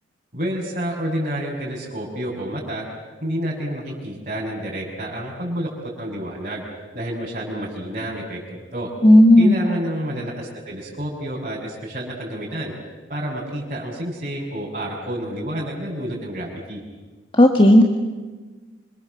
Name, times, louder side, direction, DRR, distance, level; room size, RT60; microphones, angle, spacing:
voice 1, 0.3-2.8 3.2-5.7 6.0-6.6 6.9-8.9 9.4-12.7 13.1-16.8, equal, 40° right, -8 dB, 6.1 m, -29 dB
voice 2, 9.0-9.5 17.3-17.8, left 1 dB, 25° left, 3 dB, 1.6 m, -11 dB
27.0 x 25.5 x 7.7 m, 1.3 s
head